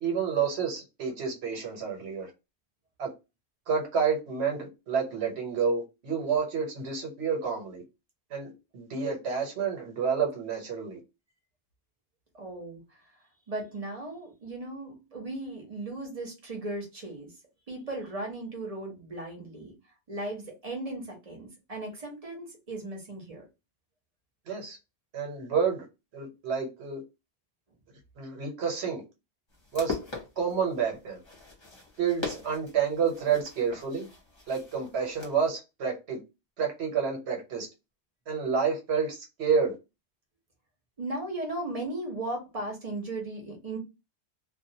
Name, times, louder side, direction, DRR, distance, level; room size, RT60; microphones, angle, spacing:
voice 1, 0.0-2.3 3.0-3.1 3.7-7.8 8.3-11.0 24.5-24.8 25.1-25.9 26.1-27.0 28.2-29.0 29.7-30.0 30.4-31.2 32.0-34.1 34.5-36.2 36.6-37.7 38.3-39.8, right 6 dB, 75° right, 1.2 m, -29 dB
voice 2, 12.3-12.8 13.5-17.3 17.7-19.7 20.1-23.4 41.0-43.8, right 2 dB, 35° right, 0.8 m, -37 dB
sound 1, 29.5-35.5, left 3 dB, 30° left, 0.8 m, -41 dB
2.4 x 2.2 x 2.7 m
omnidirectional pair, 1.1 m